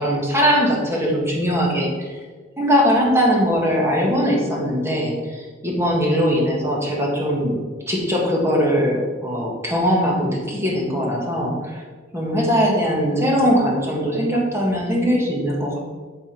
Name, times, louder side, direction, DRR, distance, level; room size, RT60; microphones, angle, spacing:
voice 1, 0.0-2.2 2.6-7.6 7.9-11.8 12.1-15.8, equal, 15° right, -2 dB, 1.7 m, -20 dB
10.5 x 4.1 x 5.3 m, 1.4 s
head